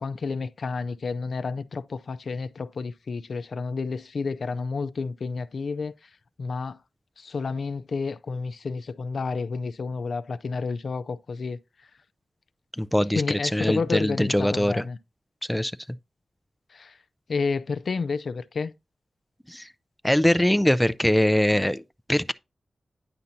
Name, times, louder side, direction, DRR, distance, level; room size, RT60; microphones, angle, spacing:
voice 1, 0.0-6.8 7.2-11.9 13.1-15.0 16.7-17.0 17.3-18.7, left 4 dB, 70° left, 0.4 m, -30 dB
voice 2, 12.8-13.2 13.5-14.8 15.5-15.7 19.5-19.7 20.0-21.8 22.1-22.3, left 1 dB, 5° left, 0.4 m, -22 dB
9.6 x 5.7 x 2.7 m
cardioid pair, 60°, 0 cm